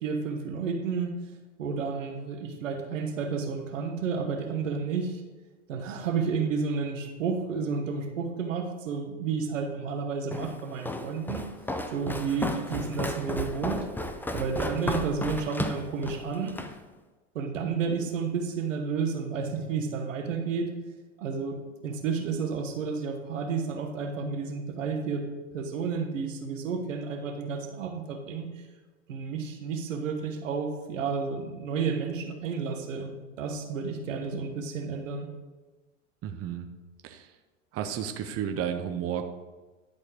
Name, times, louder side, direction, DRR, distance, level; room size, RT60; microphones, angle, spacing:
voice 1, 0.0-1.1 1.6-5.2 5.7-11.5 11.9-13.9 14.3-16.6 17.3-20.7 21.2-25.2 25.5-28.7 29.1-35.3, right 5 dB, 85° right, 3 dB, 1.4 m, -31 dB
Walk footsteps, 10.3-16.8, left 1 dB, 5° left, 0.5 m, -34 dB
voice 2, 36.2-36.7 37.0-37.3 37.7-39.2, right 9 dB, 40° right, 6 dB, 0.8 m, -32 dB
10.5 x 4.3 x 5.0 m, 1.2 s
hypercardioid pair, 90°, 37 cm